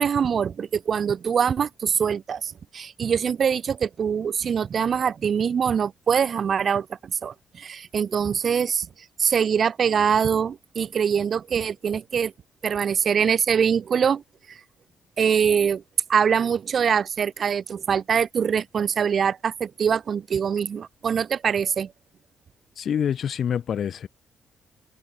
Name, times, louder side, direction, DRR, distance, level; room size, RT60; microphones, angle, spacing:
voice 1, 0.0-8.9 9.2-12.3 12.6-14.2 14.5-14.6 15.2-15.8 16.1-21.9, right 7 dB, 50° right, 1.0 m, -23 dB
voice 2, 22.8-24.1, left 8 dB, 60° left, 6.3 m, -26 dB
cardioid pair, 90°, 0 cm